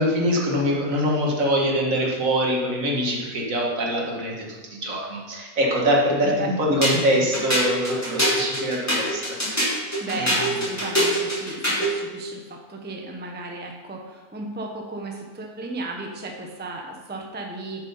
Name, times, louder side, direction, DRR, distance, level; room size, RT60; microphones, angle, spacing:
voice 1, 0.0-9.7 10.2-10.3, equal, 65° right, -2 dB, 2.0 m, -24 dB
voice 2, 6.2-6.5 8.1-8.2 9.6-17.8, right 2 dB, 10° right, 1 dB, 0.8 m, -35 dB
sound 1, 6.8-12.0, equal, 10° left, 3.3 m, -24 dB
8.0 x 6.8 x 5.5 m, 1.3 s
omnidirectional pair, 1.5 m